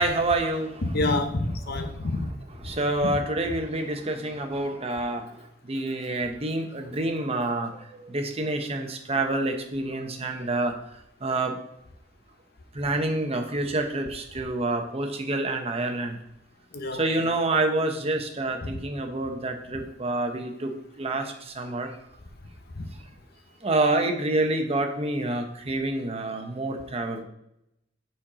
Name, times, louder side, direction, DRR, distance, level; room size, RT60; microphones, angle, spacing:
voice 1, 0.0-0.8 2.6-5.3 5.7-10.8 11.2-11.6 12.7-16.2 16.9-20.7 21.0-21.9 23.6-27.2, right 2 dB, 35° right, 0.9 m, -27 dB
voice 2, 0.8-2.3 2.6-2.7 16.7-17.3 18.6-18.8 22.7-22.9, left 2 dB, 60° left, 0.8 m, -28 dB
7.3 x 4.4 x 5.0 m
head